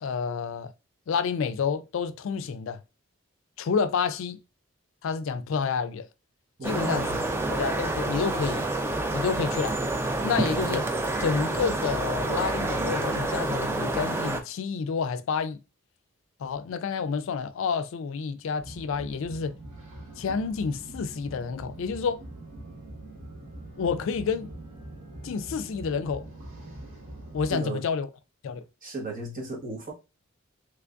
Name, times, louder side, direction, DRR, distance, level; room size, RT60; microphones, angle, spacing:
voice 1, 0.0-0.7 1.1-2.8 3.6-4.4 5.0-6.1 6.6-7.1 7.5-8.7 9.1-9.8 10.2-10.9 11.2-15.6 16.4-19.5 20.2-22.2 23.8-24.5 25.2-26.3 27.3-28.1 28.4-28.6, left 5 dB, 65° left, 0.3 m, -29 dB
sound 1, 6.6-14.4, right 2 dB, 10° right, 0.3 m, -28 dB
voice 2, 6.6-7.3 27.5-27.8 28.8-29.9, right 2 dB, 40° right, 1.2 m, -35 dB
sound 2, 18.6-27.5, right 1 dB, 75° right, 1.5 m, -43 dB
3.4 x 3.2 x 2.5 m
head